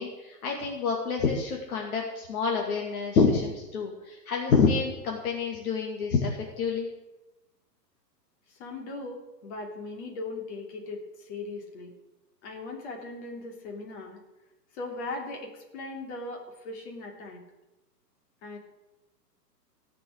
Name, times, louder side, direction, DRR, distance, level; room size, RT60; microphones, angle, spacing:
voice 1, 0.0-6.9, left 5 dB, 60° left, 0 dB, 2.4 m, -27 dB
voice 2, 8.5-11.9 12.4-14.2 14.7-17.4 18.4-18.6, left 2 dB, 45° left, 0 dB, 3.3 m, -39 dB
16.5 x 6.2 x 8.0 m, 1.0 s
hypercardioid pair, 150°, 49 cm